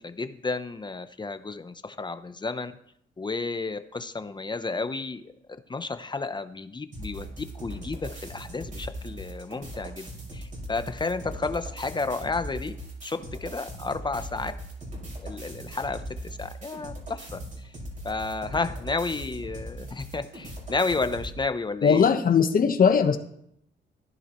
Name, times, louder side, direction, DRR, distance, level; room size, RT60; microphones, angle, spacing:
voice 1, 0.0-2.7 3.2-5.3 5.7-12.7 13.0-14.5 15.2-17.7 18.0-22.0, left 3 dB, 20° left, 10 dB, 0.8 m, -32 dB
sound 1, 6.9-21.4, right 1 dB, 40° right, 5.7 m, -39 dB
voice 2, 21.8-23.2, left 6 dB, 45° left, 7 dB, 1.3 m, -19 dB
15.0 x 10.5 x 3.1 m, 0.72 s
cardioid pair, 90°, 20 cm